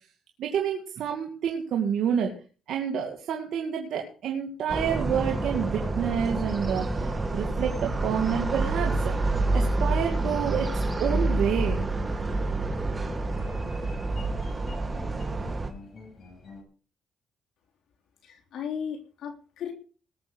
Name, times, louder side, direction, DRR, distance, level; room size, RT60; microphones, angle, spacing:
voice 1, 0.4-2.3 2.7-9.2 9.5-10.7 11.0-11.9, right 8 dB, 75° right, 1 dB, 2.3 m, -28 dB
sound 1, 4.7-15.7, right 2 dB, 25° right, 2.4 m, -28 dB
sound 2, 9.5-16.6, left 3 dB, 45° left, 6.1 m, -47 dB
voice 2, 18.2-19.7, left 7 dB, 70° left, 2 dB, 3.4 m, -35 dB
19.5 x 7.0 x 6.3 m, 0.38 s
cardioid pair, 90°, 0 cm